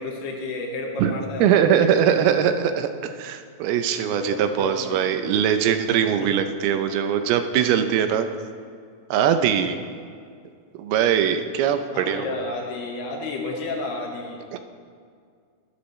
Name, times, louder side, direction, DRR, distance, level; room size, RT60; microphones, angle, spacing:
voice 1, 0.0-2.5 4.0-5.1 6.2-6.3 11.9-14.4, left 2 dB, 90° left, 1 dB, 3.5 m, -32 dB
voice 2, 1.4-8.3 9.1-9.8 10.8-12.4 14.5-14.6, right 9 dB, 80° right, 8 dB, 2.5 m, -21 dB
21.5 x 11.5 x 3.2 m, 2.2 s
omnidirectional pair, 4.5 m